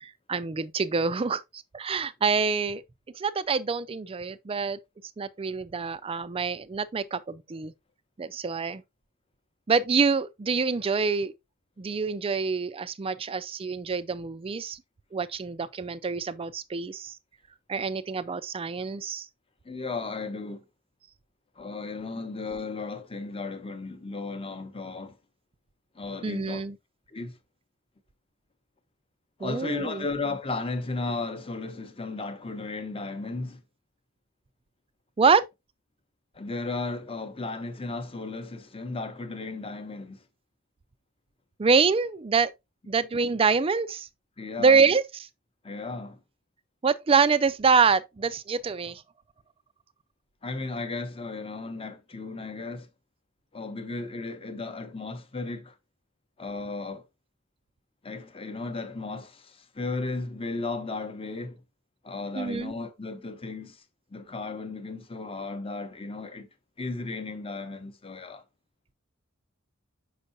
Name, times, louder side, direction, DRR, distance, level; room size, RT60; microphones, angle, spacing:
voice 1, 0.0-2.8 3.1-4.8 5.2-7.7 8.2-8.8 9.7-11.3 11.8-14.8 15.1-17.1 17.7-19.3 26.2-26.8 29.4-30.1 35.2-35.4 41.6-42.5 42.9-44.1 44.6-45.3 46.8-49.0 62.4-62.7, right 5 dB, 25° right, 0.4 m, -26 dB
voice 2, 19.6-20.6 21.6-25.2 25.9-26.6 27.1-27.4 29.4-33.6 36.3-40.2 44.4-44.8 45.6-46.2 50.4-52.9 53.5-55.8 56.4-57.0 58.0-61.6 62.0-63.8 64.1-66.5 66.8-68.4, left 3 dB, 25° left, 0.8 m, -35 dB
6.6 x 5.4 x 2.6 m
head